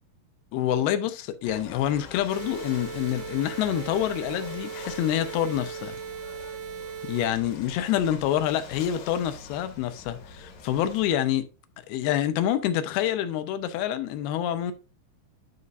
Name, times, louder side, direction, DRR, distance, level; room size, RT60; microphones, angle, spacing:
voice 1, 0.5-6.0 7.0-11.4 11.9-14.7, left 11 dB, 85° left, 2.6 m, -27 dB
Ocean / Boat Water vehicle, 1.4-11.1, left 5 dB, 60° left, 2.2 m, -44 dB
sound 1, 2.3-7.3, right 8 dB, 80° right, 2.7 m, -38 dB
11.0 x 5.4 x 2.5 m
omnidirectional pair, 4.5 m